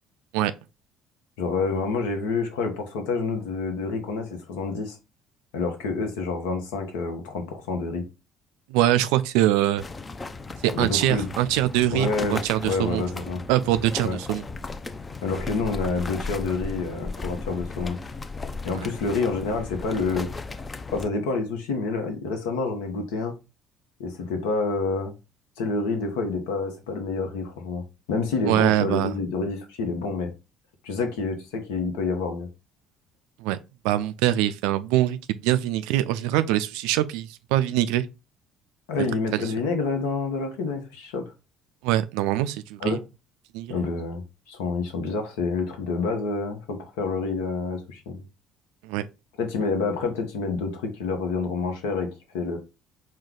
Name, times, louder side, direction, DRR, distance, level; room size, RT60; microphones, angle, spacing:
voice 1, 1.4-5.0 5.5-8.0 10.7-11.3 11.9-13.4 14.0-14.2 15.2-18.0 18.6-20.3 20.9-23.3 24.0-25.1 25.6-30.3 30.8-32.5 38.9-41.2 42.8-43.0 43.7-48.2 49.4-52.6, left 4 dB, 70° left, 0.9 m, -28 dB
voice 2, 8.7-9.8 10.6-13.0 13.5-14.4 18.8-18.9 28.5-29.2 33.4-33.6 33.8-38.1 39.3-39.5 41.8-43.0 43.5-43.8 48.8-49.1, right 13 dB, 70° right, 0.3 m, -23 dB
sound 1, 9.8-21.1, left 3 dB, 25° left, 0.5 m, -36 dB
4.4 x 2.2 x 3.7 m
figure-of-eight pair, 55°, 0 cm